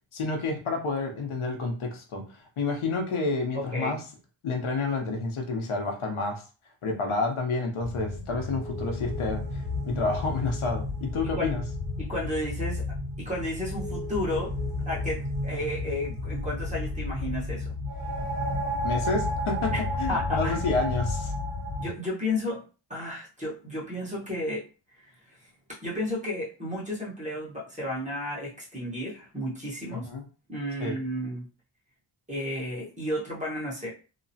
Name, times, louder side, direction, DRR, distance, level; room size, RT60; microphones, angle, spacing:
voice 1, 0.1-4.0 4.4-6.4 6.8-11.6 18.8-19.7 20.0-21.3 29.9-30.2 30.8-31.0, left 3 dB, 85° left, 3 dB, 0.8 m, -29 dB
voice 2, 3.5-4.0 11.3-11.6 12.0-12.8 13.2-14.5 14.9-17.7 19.7-19.8 20.1-20.6 21.8-22.6 22.9-24.6 25.0-25.4 25.8-30.1 30.5-31.4 32.3-33.9, left 1 dB, 15° right, -6 dB, 1.0 m, -32 dB
sound 1, 7.8-21.9, left 2 dB, 75° right, 1.3 m, -32 dB
2.9 x 2.0 x 2.7 m, 0.34 s
wide cardioid pair, 175°, 48 cm